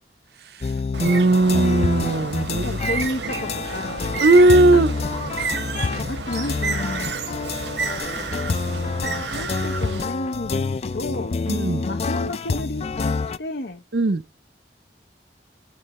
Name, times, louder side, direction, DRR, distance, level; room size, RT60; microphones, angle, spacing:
sound 1, 0.6-13.4, left 4 dB, 35° left, 0.3 m, -27 dB
Bird, 0.9-10.0, right 5 dB, 85° right, 1.1 m, -30 dB
voice 1, 1.0-2.8 4.2-4.9 11.5-11.9 13.9-14.2, right 2 dB, 65° right, 0.6 m, -17 dB
voice 2, 2.6-4.1 4.7-4.8 6.1-7.2 8.6-8.9 9.3-11.4 11.8-13.8, left 1 dB, 75° left, 0.9 m, -32 dB
11.5 x 3.9 x 4.2 m
head